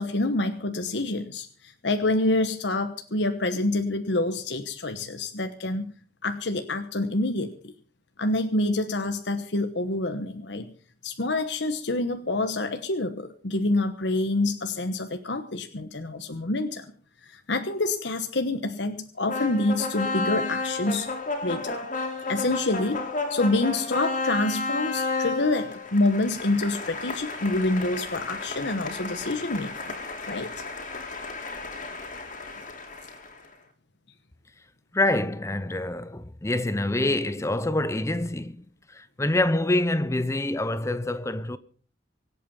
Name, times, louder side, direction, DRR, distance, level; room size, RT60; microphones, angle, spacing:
voice 1, 0.0-5.9 6.2-7.7 8.2-10.7 11.0-16.9 17.2-21.1 21.4-21.8 22.3-29.9 30.3-30.6 32.5-32.6, left 2 dB, 70° left, 1.2 m, -27 dB
sound 1, 19.3-33.4, left 3 dB, 45° left, 3.1 m, -32 dB
voice 2, 34.9-41.6, left 1 dB, 15° left, 0.7 m, -26 dB
24.5 x 8.5 x 5.6 m
head